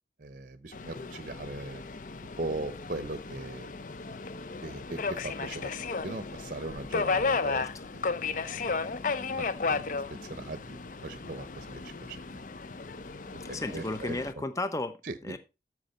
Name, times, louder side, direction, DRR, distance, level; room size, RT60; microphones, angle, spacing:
voice 1, 0.2-1.8 2.4-3.7 4.6-7.7 7.9-8.0 9.3-12.2 13.5-14.2 15.0-15.4, right 2 dB, 50° right, 12 dB, 0.8 m, -39 dB
Subway metro underground, 0.7-14.3, left 4 dB, 45° left, 0.6 m, -34 dB
voice 2, 13.4-15.0 15.2-15.4, left 2 dB, 20° left, 10 dB, 0.9 m, -34 dB
13.5 x 6.1 x 4.3 m, 0.28 s
head